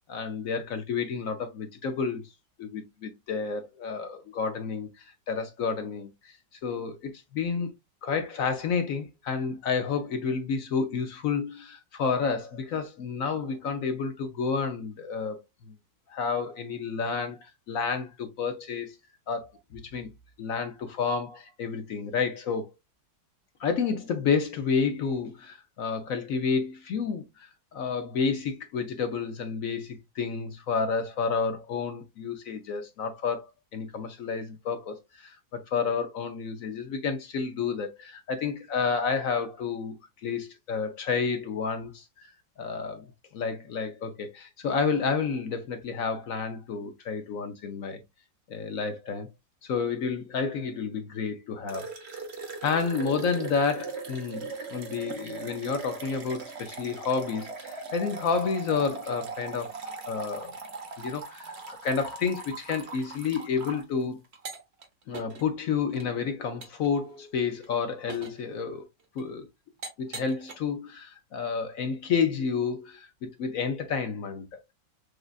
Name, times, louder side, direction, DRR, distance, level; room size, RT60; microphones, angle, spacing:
voice 1, 0.1-2.2 2.6-6.3 6.6-7.7 8.0-15.7 16.1-19.0 19.3-20.1 20.4-22.7 23.6-39.9 40.2-42.3 42.6-43.1 43.3-48.0 48.5-49.3 49.6-51.9 52.6-59.7 60.1-60.6 61.0-64.2 65.1-68.9 69.1-69.5 70.0-74.7, left 5 dB, 65° left, 0.9 m, -30 dB
sound 1, 51.7-63.8 64.3-64.8 65.1-65.4 65.9-66.0 66.6-66.9 67.4-67.6 68.1-68.4 69.2-69.3 69.8-70.5, right 4 dB, 45° right, 0.9 m, -40 dB
6.3 x 2.3 x 2.4 m
omnidirectional pair, 1.9 m